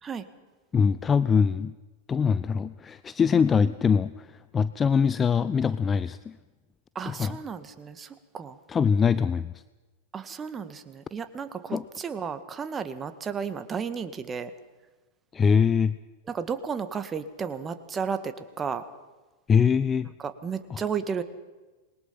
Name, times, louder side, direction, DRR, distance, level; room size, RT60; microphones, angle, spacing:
voice 1, 0.7-1.7 2.1-6.4 7.1-7.4 8.7-9.5 11.7-11.8 15.3-16.0 19.5-20.1 20.7-20.8, left 6 dB, 20° left, 15 dB, 0.6 m, -23 dB
voice 2, 7.0-8.6 10.1-14.5 16.3-18.8 20.4-21.2, right 6 dB, 20° right, 10 dB, 1.9 m, -33 dB
27.0 x 22.0 x 5.8 m, 1.2 s
figure-of-eight pair, 90°, 0 cm